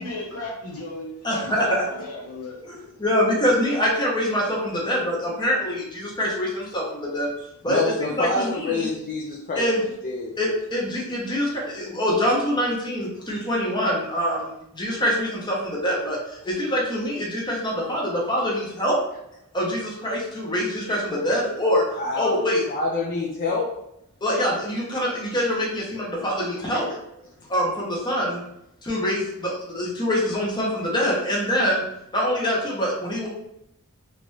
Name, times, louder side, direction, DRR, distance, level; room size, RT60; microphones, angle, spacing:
voice 1, 0.0-2.6, left 2 dB, 75° left, 0.8 m, -35 dB
voice 2, 1.2-1.8 2.6-7.3 7.6-8.9 9.5-9.8 10.4-19.0 19.5-21.8 22.1-22.6 24.2-26.9 27.5-28.4 28.8-31.8 32.1-33.3, equal, 20° left, 0.9 m, -24 dB
voice 3, 7.6-10.3 21.9-22.4 22.7-23.8 26.7-26.8, left 3 dB, 40° left, 0.5 m, -27 dB
3.1 x 2.5 x 3.1 m
head